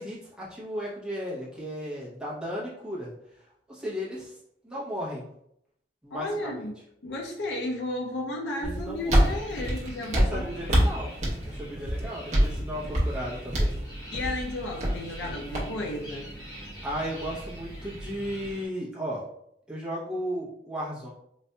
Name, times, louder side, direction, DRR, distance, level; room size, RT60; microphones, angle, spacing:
voice 1, 0.0-3.1 3.7-4.3 4.6-5.2 6.0-6.6 8.6-9.3 10.1-11.1 11.4-13.7 16.8-19.2 19.7-21.1, equal, 5° right, -7 dB, 0.9 m, -35 dB
voice 2, 6.1-6.7 7.0-10.8 14.1-16.3, left 1 dB, 75° left, 0 dB, 0.5 m, -33 dB
sound 1, 8.6-18.5, equal, 40° right, 0.8 m, -28 dB
sound 2, 9.1-18.7, right 1 dB, 20° left, 1.0 m, -45 dB
4.0 x 2.5 x 2.2 m, 0.75 s
head